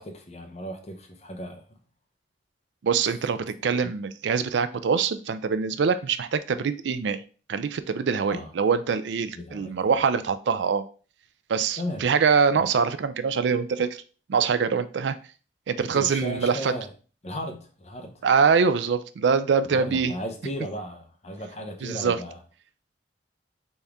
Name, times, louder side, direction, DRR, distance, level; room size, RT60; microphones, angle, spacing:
voice 1, 0.0-1.8 3.7-3.8 8.3-8.5 9.4-9.7 11.8-12.0 12.5-12.7 15.9-16.9 17.2-18.2 19.7-22.4, equal, 35° left, 0.7 m, -36 dB
voice 2, 2.8-7.2 7.5-10.8 11.5-14.0 14.3-15.2 15.7-16.7 18.2-20.1 21.8-22.2, right 5 dB, 85° right, 0.4 m, -24 dB
4.1 x 3.5 x 3.5 m
head